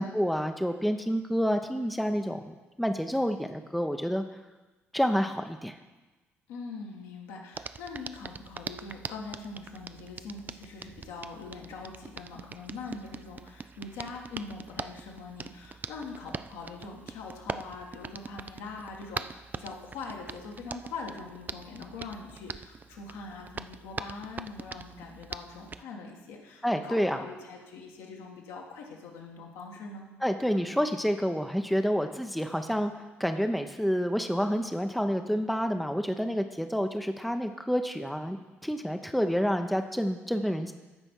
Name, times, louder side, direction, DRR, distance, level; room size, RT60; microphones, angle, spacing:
voice 1, 0.0-4.2 4.9-5.8 26.6-27.2 30.2-38.4 38.6-40.7, equal, ahead, 6 dB, 0.7 m, -28 dB
voice 2, 6.5-30.0, left 4 dB, 65° left, 0 dB, 1.5 m, -42 dB
Hands, 7.5-25.8, right 5 dB, 25° right, 0.3 m, -43 dB
14.5 x 5.4 x 4.4 m, 1.2 s
figure-of-eight pair, 45°, 7 cm